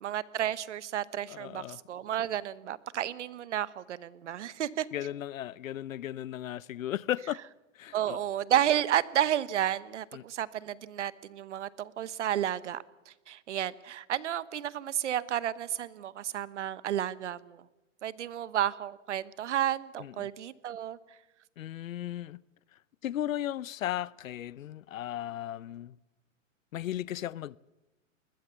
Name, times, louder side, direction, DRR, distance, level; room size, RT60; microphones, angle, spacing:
voice 1, 0.0-4.9 7.9-12.8 13.3-17.6 18.0-21.0, right 11 dB, 60° right, 1.0 m, -31 dB
voice 2, 1.3-1.8 4.9-7.4 7.8-8.2 10.1-10.2 20.0-20.3 21.6-22.4 23.0-26.0 26.7-27.6, left 12 dB, 80° left, 0.7 m, -36 dB
21.0 x 19.5 x 6.8 m
hypercardioid pair, 170°, 39 cm